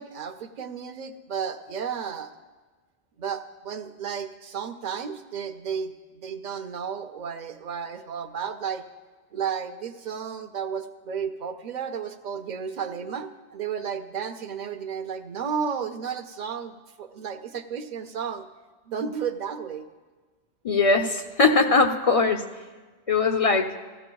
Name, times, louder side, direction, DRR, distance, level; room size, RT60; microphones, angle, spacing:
voice 1, 0.0-2.3 3.2-8.8 9.3-18.5 18.9-19.8, right 7 dB, 50° right, 7 dB, 0.6 m, -33 dB
voice 2, 20.6-22.4 23.1-23.7, left 3 dB, 50° left, 5 dB, 0.4 m, -20 dB
16.0 x 14.0 x 2.3 m, 1.4 s
omnidirectional pair, 1.2 m